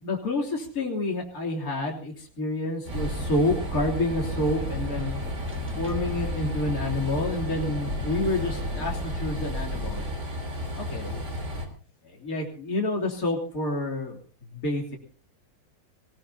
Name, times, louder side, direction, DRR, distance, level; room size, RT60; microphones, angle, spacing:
voice 1, 0.0-5.1 5.8-10.0 10.8-11.2 12.1-14.2 14.5-15.0, left 2 dB, 50° left, -1 dB, 3.7 m, -28 dB
Wind, 2.9-10.2, equal, 10° right, 1.2 m, -36 dB
Train, 2.9-11.7, equal, 40° right, 3.3 m, -33 dB
22.0 x 19.0 x 2.8 m, 0.41 s
omnidirectional pair, 2.0 m